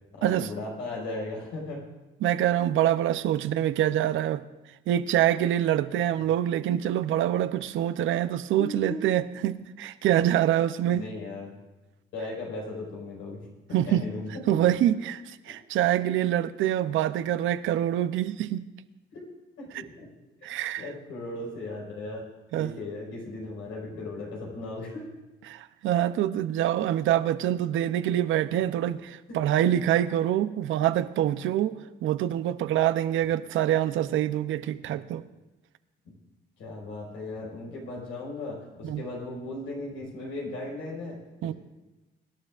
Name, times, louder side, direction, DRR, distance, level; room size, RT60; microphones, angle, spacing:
voice 1, 0.1-1.8 8.6-9.0 10.9-11.5 12.1-13.4 13.7-14.3 19.1-19.2 19.6-20.1 20.4-22.2 22.6-25.0 29.3-29.8 34.8-35.0 36.0-36.1 36.6-41.2, left 2 dB, 85° left, -2 dB, 4.9 m, -37 dB
voice 2, 2.2-4.4 4.9-11.1 13.7-14.0 14.5-18.6 19.7-19.8 20.4-20.9 22.5-22.7 25.5-35.2 38.8-39.0 41.4-41.5, right 12 dB, 80° right, 12 dB, 0.6 m, -25 dB
24.0 x 11.5 x 2.5 m, 1.1 s
cardioid pair, 90°, 20 cm